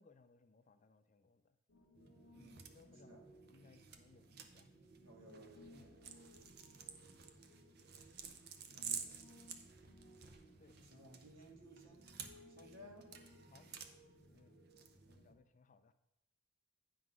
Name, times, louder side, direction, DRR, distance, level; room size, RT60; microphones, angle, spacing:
voice 1, 0.0-1.6 2.7-4.7 5.7-5.9 10.6-10.8 12.6-12.7 13.5-13.7 14.3-14.5 15.1-15.9, left 4 dB, 35° left, 10 dB, 0.4 m, -66 dB
Piano, 1.7-15.4, left 1 dB, 70° left, 1.3 m, -64 dB
sound 1, 1.9-15.3, right 7 dB, 50° right, 0.7 m, -52 dB
voice 2, 2.3-2.7 3.0-3.3 5.0-6.1 10.8-13.1, right 1 dB, 80° right, 0 dB, 1.8 m, -59 dB
9.2 x 3.8 x 6.1 m, 0.92 s
head